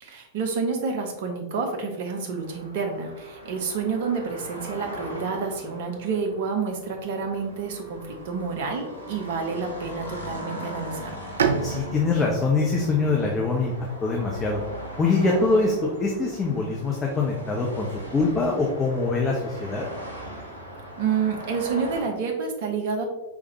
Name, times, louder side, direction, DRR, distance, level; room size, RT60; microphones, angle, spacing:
voice 1, 0.0-11.2 21.0-23.1, right 5 dB, 50° right, 3 dB, 0.9 m, -29 dB
sound 1, 2.4-22.1, right 1 dB, 85° right, 1.0 m, -40 dB
Bowed string instrument, 11.4-15.0, right 6 dB, 65° right, 0.4 m, -31 dB
voice 2, 11.6-13.7 14.0-14.6 15.0-19.8, left 3 dB, 20° left, -1 dB, 0.7 m, -24 dB
4.8 x 3.6 x 2.9 m, 1.1 s
figure-of-eight pair, 90°, 0 cm